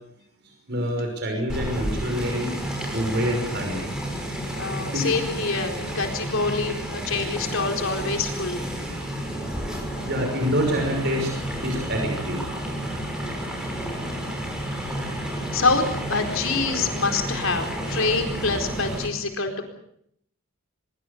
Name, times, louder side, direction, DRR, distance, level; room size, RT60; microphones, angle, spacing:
voice 1, 0.7-2.5 2.9-3.8 4.9-5.1 10.1-11.3 11.6-12.4, equal, 55° right, 3 dB, 5.9 m, -26 dB
sound 1, 1.5-19.1, equal, 5° right, 6.4 m, -31 dB
voice 2, 4.6-8.6 15.5-19.6, left 3 dB, 65° left, 5 dB, 4.4 m, -26 dB
24.0 x 23.0 x 6.9 m, 0.69 s
head